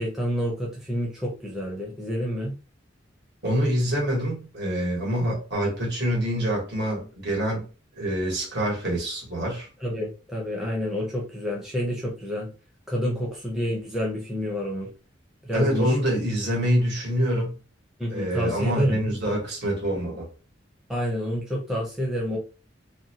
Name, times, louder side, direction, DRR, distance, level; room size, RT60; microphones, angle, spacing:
voice 1, 0.0-2.6 9.8-12.5 12.9-14.9 15.4-16.0 18.0-19.0 20.9-22.4, equal, 5° right, 0.6 m, -28 dB
voice 2, 3.4-7.7 8.0-9.7 15.5-17.6 18.1-20.3, equal, 60° right, 1.3 m, -26 dB
2.6 x 2.1 x 2.8 m
head